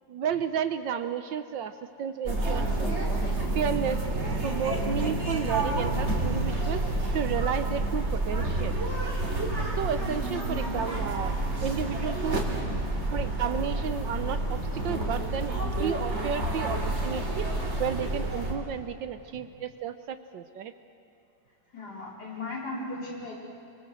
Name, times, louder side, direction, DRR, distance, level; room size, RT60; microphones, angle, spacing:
voice 1, 0.1-1.7 2.0-2.9 3.5-4.0 4.4-6.8 7.1-8.8 9.8-12.6 13.1-17.5 17.8-20.7, right 8 dB, 75° right, 10 dB, 1.5 m, -32 dB
sound 1, 2.3-18.5, right 2 dB, 35° right, 4.0 m, -29 dB
voice 2, 21.7-23.3, left 2 dB, 55° left, -2 dB, 4.9 m, -37 dB
27.5 x 24.5 x 7.8 m, 2.9 s
omnidirectional pair, 2.1 m